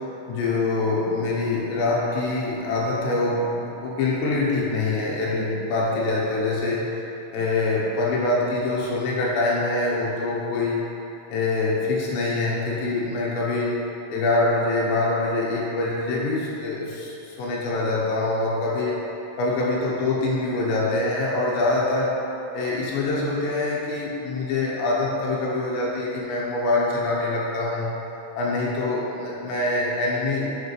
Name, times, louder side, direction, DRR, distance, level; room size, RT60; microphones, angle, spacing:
voice 1, 0.0-6.9 7.3-10.8 11.3-13.8 14.1-19.1 19.4-22.2 22.5-27.9 28.4-30.5, left 2 dB, 85° left, -5 dB, 3.1 m, -24 dB
9.5 x 5.8 x 3.2 m, 2.9 s
omnidirectional pair, 5.0 m